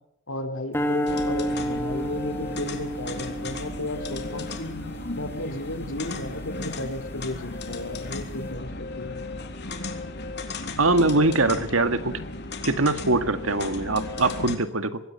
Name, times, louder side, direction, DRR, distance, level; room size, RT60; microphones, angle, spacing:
voice 1, 0.3-4.7 5.1-9.2, left 1 dB, 80° left, 5 dB, 4.4 m, -34 dB
sound 1, 0.7-7.1, equal, 10° left, 3.3 m, -32 dB
sound 2, 1.1-14.6, left 2 dB, 55° left, 3.5 m, -35 dB
voice 2, 10.8-12.1 12.6-15.0, right 2 dB, 85° right, 10 dB, 2.0 m, -22 dB
25.5 x 21.5 x 5.7 m, 0.74 s
head